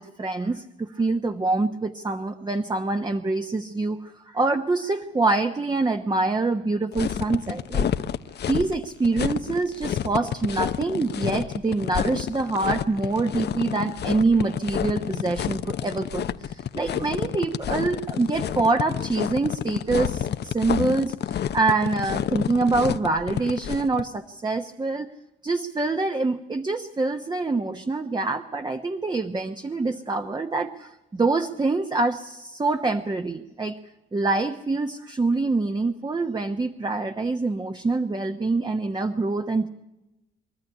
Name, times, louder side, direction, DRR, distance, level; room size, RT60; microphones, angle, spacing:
voice 1, 0.0-7.9 8.5-21.1 21.5-25.1 25.4-33.8 34.1-39.7, right 3 dB, 20° right, 6 dB, 1.1 m, -25 dB
sound 1, 6.9-24.0, left 9 dB, 55° left, 0.8 m, -29 dB
23.5 x 13.5 x 9.9 m, 0.96 s
cardioid pair, 90°, 20 cm